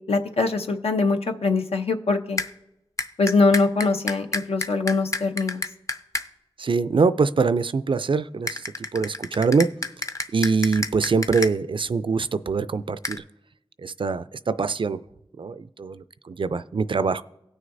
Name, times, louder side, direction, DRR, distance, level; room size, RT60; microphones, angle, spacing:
voice 1, 0.1-2.4 3.2-5.6, left 3 dB, 80° left, 5 dB, 0.7 m, -22 dB
sound 1, 2.4-2.5 3.0-6.3 8.5-11.5 13.0-13.2, left 2 dB, 30° left, 0.6 m, -29 dB
voice 2, 6.6-9.7 10.3-13.2 13.8-15.0 15.4-17.2, right 4 dB, 55° right, 14 dB, 0.4 m, -24 dB
17.5 x 6.4 x 2.6 m, 0.89 s
cardioid pair, 50°, 10 cm